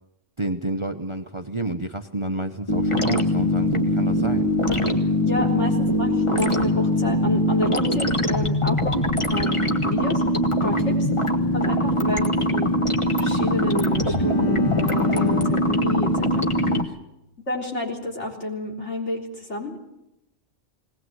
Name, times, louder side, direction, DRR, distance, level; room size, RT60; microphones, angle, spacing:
voice 1, 0.4-4.5 5.4-5.5 10.7-10.9 16.6-16.9, right 2 dB, 25° right, 7 dB, 0.9 m, -30 dB
sound 1, 2.7-16.8, equal, 25° left, 1.5 m, -22 dB
voice 2, 5.2-10.2 10.5-11.1 11.5-12.7 13.2-16.4 17.5-19.8, left 2 dB, 65° left, -1 dB, 4.0 m, -30 dB
Bowed string instrument, 12.9-17.1, left 8 dB, 85° left, 1.7 m, -31 dB
20.0 x 19.5 x 7.9 m, 0.88 s
omnidirectional pair, 1.3 m